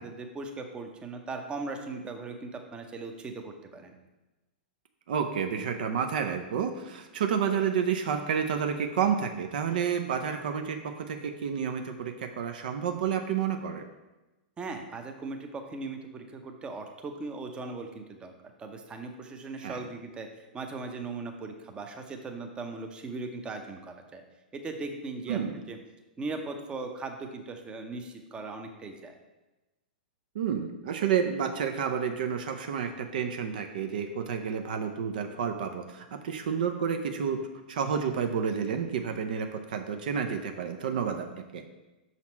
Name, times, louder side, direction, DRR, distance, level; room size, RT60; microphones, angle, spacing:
voice 1, 0.0-3.9 14.6-24.2 24.5-25.4 25.7-25.8 26.2-29.1, right 3 dB, 20° right, 4 dB, 0.7 m, -39 dB
voice 2, 5.1-13.8 19.6-19.8 25.3-25.5 30.3-41.6, right 7 dB, 60° right, 5 dB, 0.5 m, -30 dB
6.0 x 4.1 x 4.4 m, 1.1 s
figure-of-eight pair, 105°, 5 cm